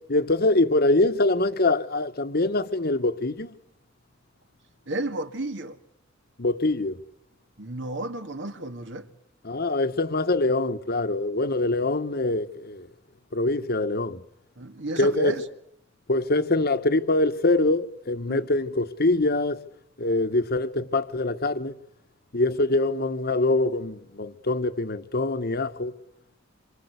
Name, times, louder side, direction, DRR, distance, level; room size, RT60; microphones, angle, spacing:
voice 1, 0.1-3.5 6.4-7.0 9.4-12.9 13.3-14.2 15.0-15.3 16.1-19.6 20.0-21.7 22.3-25.9, left 2 dB, 50° left, 1.4 m, -24 dB
voice 2, 4.9-5.8 7.6-9.1 14.6-15.4 18.3-18.5, right 2 dB, 60° right, 2.1 m, -32 dB
26.5 x 26.5 x 8.2 m
head